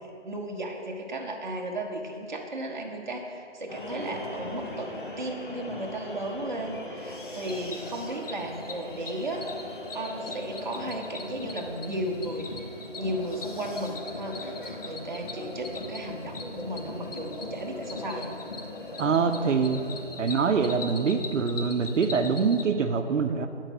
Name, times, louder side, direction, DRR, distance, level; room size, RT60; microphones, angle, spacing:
voice 1, 0.0-9.5 9.9-12.5 13.0-18.3, right 1 dB, 40° right, 0 dB, 0.7 m, -35 dB
sound 1, 3.7-20.1, left 1 dB, 45° left, 0.7 m, -39 dB
Cricket, 7.4-22.6, left 4 dB, 85° left, 0.9 m, -43 dB
voice 2, 19.0-19.8 20.2-23.5, right 5 dB, 80° right, 7 dB, 0.6 m, -24 dB
7.8 x 4.5 x 5.9 m, 2.6 s
hypercardioid pair, 180°, 36 cm